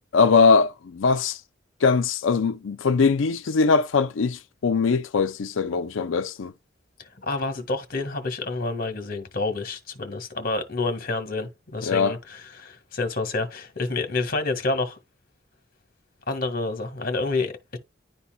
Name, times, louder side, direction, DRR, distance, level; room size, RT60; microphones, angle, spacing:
voice 1, 0.1-1.4 1.8-6.5 11.8-12.1, left 5 dB, 85° left, 0.5 m, -21 dB
voice 2, 7.2-15.0 16.3-17.8, left 3 dB, 50° left, 1.5 m, -28 dB
11.0 x 4.1 x 2.2 m
head